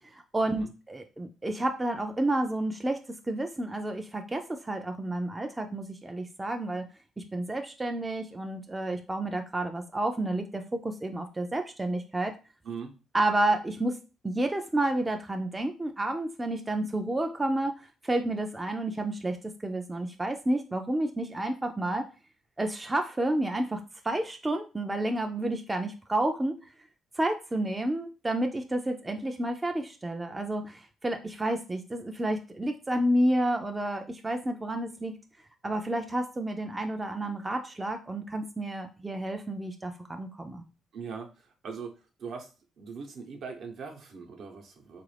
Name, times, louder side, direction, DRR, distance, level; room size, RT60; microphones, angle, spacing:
voice 1, 0.1-3.0 3.3-6.8 7.2-12.3 13.1-14.0 14.2-17.7 18.0-22.1 22.6-26.6 27.2-35.1 35.6-40.6, right 1 dB, 15° right, 4 dB, 0.4 m, -30 dB
voice 2, 12.6-13.0 40.9-42.5 42.8-45.0, right 5 dB, 65° right, 3 dB, 0.8 m, -40 dB
3.9 x 2.5 x 3.2 m, 0.33 s
cardioid pair, 90°, 0 cm